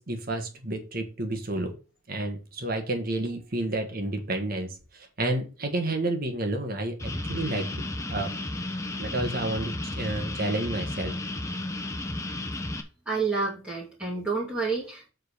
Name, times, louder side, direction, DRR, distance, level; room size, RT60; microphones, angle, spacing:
voice 1, 0.0-1.7 2.1-7.8 8.1-8.3 9.0-11.1, right 2 dB, 45° right, 1.5 m, -30 dB
sound 1, 7.0-12.8, left 1 dB, 15° left, 0.8 m, -33 dB
voice 2, 13.1-15.1, right 4 dB, 5° right, 2.3 m, -29 dB
7.5 x 3.9 x 6.7 m
head